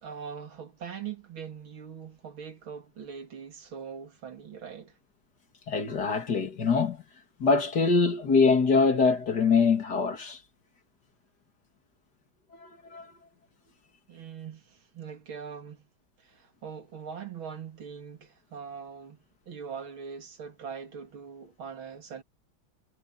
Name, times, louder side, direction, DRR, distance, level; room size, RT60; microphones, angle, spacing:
voice 1, 0.0-5.0 14.1-15.9 16.2-19.2 19.5-22.2, right 7 dB, 90° right, 3.3 m, -42 dB
voice 2, 5.7-7.0 7.4-10.4 12.6-13.1, left 4 dB, 55° left, 2.8 m, -24 dB
omnidirectional pair, 2.1 m